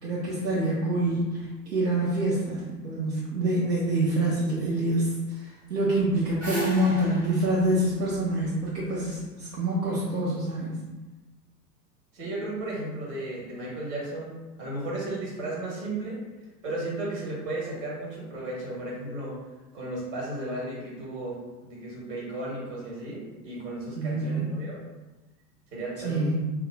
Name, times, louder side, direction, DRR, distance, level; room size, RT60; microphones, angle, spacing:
voice 1, 0.0-10.8 24.0-24.5 26.0-26.3, right 1 dB, 65° right, -7 dB, 0.8 m, -26 dB
sound 1, 5.9-9.1, right 2 dB, 15° right, 0.8 m, -35 dB
voice 2, 12.1-16.2 16.6-19.3 19.7-21.4 21.6-24.8 25.7-26.3, right 2 dB, 50° right, -5 dB, 1.4 m, -34 dB
2.7 x 2.2 x 3.3 m, 1.1 s
figure-of-eight pair, 90°, 50 cm